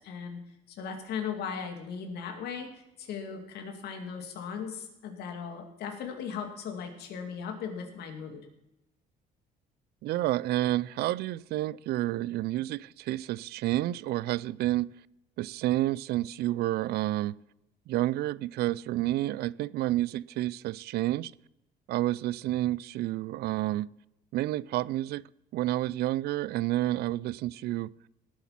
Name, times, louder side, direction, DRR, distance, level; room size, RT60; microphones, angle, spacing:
voice 1, 0.0-2.7 3.0-8.4, left 6 dB, 75° left, 2.6 m, -38 dB
voice 2, 10.0-14.9 15.4-17.4 17.9-21.3 21.9-23.9 24.3-25.3 25.5-27.9, right 15 dB, 70° right, 0.4 m, -29 dB
18.0 x 8.4 x 5.9 m
cardioid pair, 110°, 17 cm